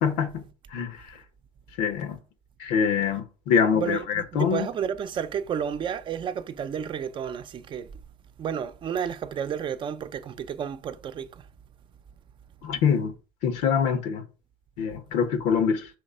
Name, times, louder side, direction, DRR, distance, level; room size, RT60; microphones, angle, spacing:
voice 1, 0.0-1.1 1.8-2.2 2.6-4.7 12.6-13.1 13.4-14.2 14.8-15.9, left 7 dB, 80° left, 1.0 m, -25 dB
voice 2, 3.7-7.9 8.4-11.4, right 8 dB, 40° right, 0.7 m, -31 dB
5.6 x 3.2 x 5.5 m
cardioid pair, 115°, 13 cm